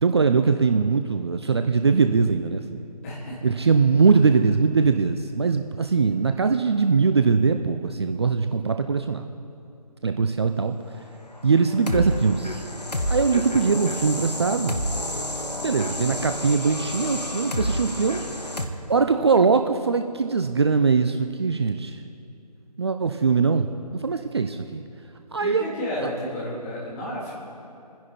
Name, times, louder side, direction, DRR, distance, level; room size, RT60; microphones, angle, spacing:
voice 1, 0.0-2.8 3.4-9.2 10.0-10.7 11.4-12.6 13.1-14.8 15.6-18.2 18.9-22.0 22.8-23.7 24.0-24.8 25.3-25.6, right 5 dB, 40° right, 7 dB, 0.6 m, -21 dB
voice 2, 3.0-3.6 15.5-15.7 25.4-27.3, equal, 20° left, -6 dB, 3.4 m, -32 dB
sound 1, 11.3-18.7, left 1 dB, 75° left, 1.5 m, -30 dB
28.0 x 10.5 x 4.4 m, 2.6 s
figure-of-eight pair, 150°, 21 cm